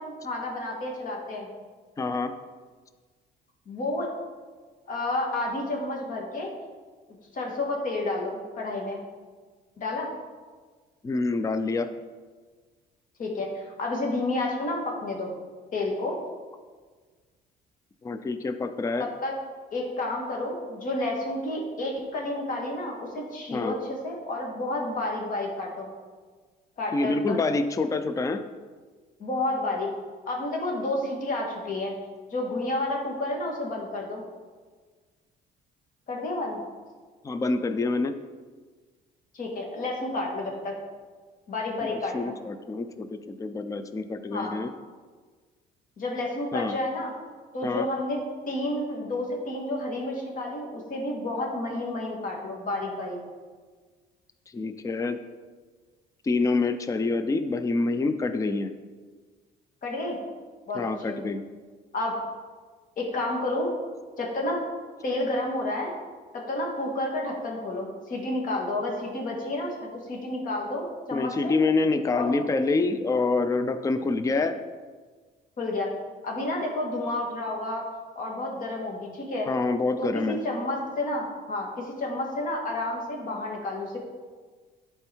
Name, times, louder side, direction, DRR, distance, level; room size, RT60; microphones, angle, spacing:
voice 1, 0.0-1.5 3.7-4.1 4.9-6.5 7.3-9.0 9.8-10.1 13.2-15.3 15.7-16.2 19.0-19.3 19.7-25.9 26.8-27.4 29.2-29.9 30.3-31.9 32.3-34.2 36.1-36.6 39.3-40.7 41.5-42.4 44.3-44.6 46.0-47.1 47.5-48.2 48.5-53.2 59.8-60.2 60.7-61.2 61.9-62.1 63.0-63.7 64.2-64.6 65.0-65.9 66.3-71.5 72.1-72.3 75.6-75.9 76.2-77.9 78.2-79.5 80.0-84.0, left 2 dB, 50° left, 0 dB, 2.1 m, -30 dB
voice 2, 2.0-2.3 11.0-11.9 18.0-19.1 23.5-23.7 26.9-28.4 37.2-38.1 41.8-44.7 46.5-46.8 47.6-47.9 54.5-55.2 56.2-58.7 60.7-61.4 71.1-74.6 79.5-80.4, left 3 dB, 20° left, 10 dB, 0.5 m, -26 dB
11.0 x 4.5 x 4.5 m, 1.5 s
cardioid pair, 110°, 17 cm